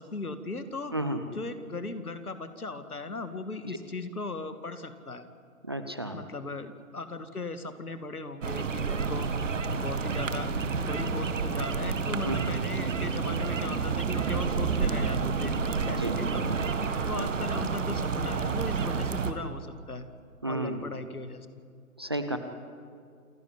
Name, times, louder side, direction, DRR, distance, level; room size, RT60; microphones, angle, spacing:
voice 1, 0.0-5.2 6.1-16.6 17.1-20.1 20.5-21.5, left 3 dB, 85° left, 10 dB, 2.1 m, -38 dB
voice 2, 0.9-1.2 5.6-6.2 12.2-12.4 16.0-16.2 17.1-17.3 20.4-20.8 22.0-22.4, right 1 dB, 20° right, 8 dB, 0.5 m, -32 dB
sound 1, 8.4-19.3, right 5 dB, 60° right, 1.8 m, -29 dB
28.0 x 12.0 x 9.6 m, 2.2 s
figure-of-eight pair, 140°, 43 cm